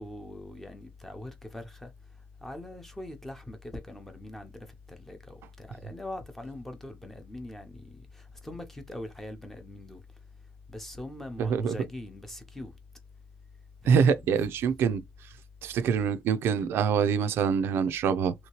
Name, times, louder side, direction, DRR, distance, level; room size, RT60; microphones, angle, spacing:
voice 1, 0.0-1.9 2.4-4.5 4.9-10.0 10.7-12.7 13.8-14.2, left 1 dB, 5° left, 0.6 m, -42 dB
voice 2, 11.4-11.8 13.8-15.0 15.6-18.3, right 6 dB, 70° right, 0.4 m, -25 dB
3.1 x 2.8 x 2.9 m
cardioid pair, 175°, 4 cm